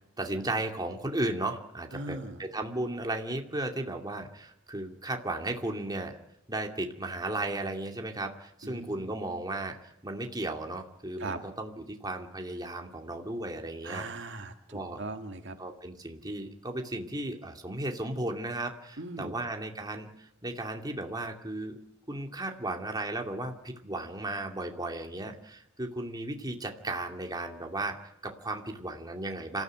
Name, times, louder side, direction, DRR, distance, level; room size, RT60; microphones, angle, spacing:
voice 1, 0.2-6.2 6.5-14.0 14.7-15.0 15.6-21.8 22.1-29.6, right 2 dB, 20° right, 3 dB, 2.5 m, -35 dB
voice 2, 1.9-2.4 8.6-9.1 11.2-11.4 13.8-15.6 19.0-19.4, right 2 dB, 60° right, 6 dB, 2.0 m, -39 dB
27.0 x 14.5 x 9.2 m, 0.85 s
head